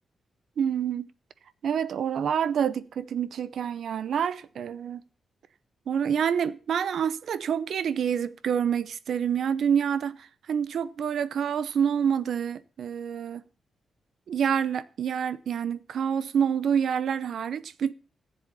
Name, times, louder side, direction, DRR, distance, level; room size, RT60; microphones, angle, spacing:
voice 1, 0.6-1.1 1.6-5.0 5.9-13.4 14.3-17.9, right 8 dB, 60° right, 0.7 m, -27 dB
14.0 x 7.7 x 6.7 m
wide cardioid pair, 175°, 0 cm